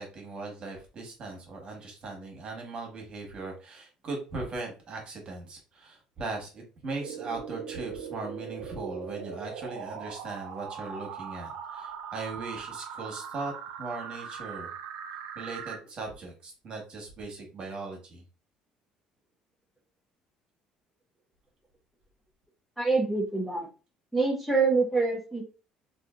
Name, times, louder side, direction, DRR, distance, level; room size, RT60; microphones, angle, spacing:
voice 1, 0.0-13.5 13.8-14.7 15.3-18.2, right 3 dB, 45° right, 1 dB, 1.2 m, -39 dB
sound 1, 7.0-15.8, right 7 dB, 85° right, 0.6 m, -40 dB
voice 2, 22.8-23.7 24.1-25.4, right 3 dB, ahead, -2 dB, 0.7 m, -25 dB
3.2 x 2.6 x 2.4 m, 0.33 s
cardioid pair, 125°, 2 cm